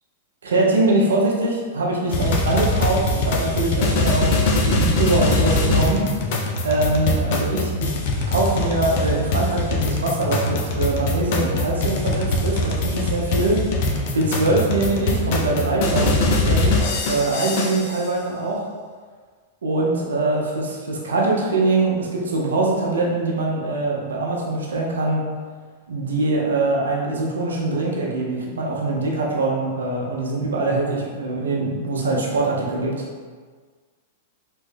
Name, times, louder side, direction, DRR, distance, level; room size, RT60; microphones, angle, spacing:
voice 1, 0.4-7.9 8.3-18.7 19.6-25.2 25.9-33.0, right 2 dB, 90° right, -3 dB, 0.6 m, -23 dB
sound 1, 2.1-18.0, left 2 dB, 60° left, 0.5 m, -22 dB
3.0 x 2.2 x 3.2 m, 1.6 s
hypercardioid pair, 120°, 0 cm